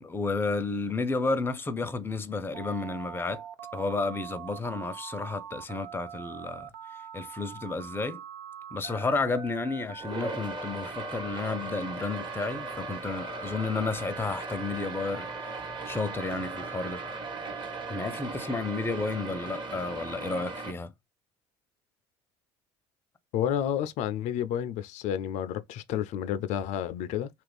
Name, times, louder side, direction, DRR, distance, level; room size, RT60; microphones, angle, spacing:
voice 1, 0.0-3.4 3.7-6.7 7.1-8.2 8.7-17.0 17.9-20.9, left 3 dB, 15° left, 0.6 m, -32 dB
Telephone, 2.5-18.2, right 8 dB, 85° right, 0.5 m, -43 dB
sound 1, 10.0-20.7, right 2 dB, 35° right, 1.2 m, -38 dB
voice 2, 23.3-27.3, left 10 dB, 60° left, 0.4 m, -30 dB
2.8 x 2.5 x 3.3 m
supercardioid pair, 80°, 13 cm